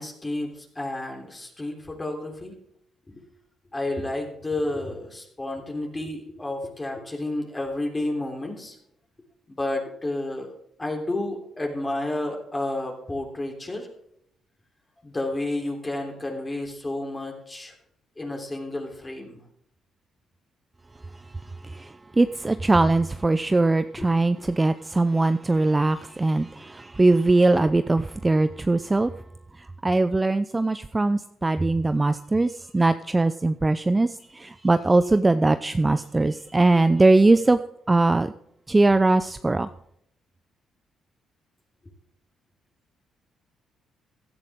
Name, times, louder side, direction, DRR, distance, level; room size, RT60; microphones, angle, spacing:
voice 1, 0.0-2.5 3.1-3.2 3.7-8.8 9.5-10.5 10.8-13.9 15.0-17.7 18.2-19.4 24.0-24.5, left 2 dB, 20° left, 2 dB, 3.4 m, -31 dB
voice 2, 21.6-29.1 29.8-37.6 37.9-38.3 38.7-39.7, right 2 dB, 20° right, 11 dB, 0.5 m, -21 dB
16.0 x 11.5 x 3.6 m, 0.73 s
cardioid pair, 90°, 0 cm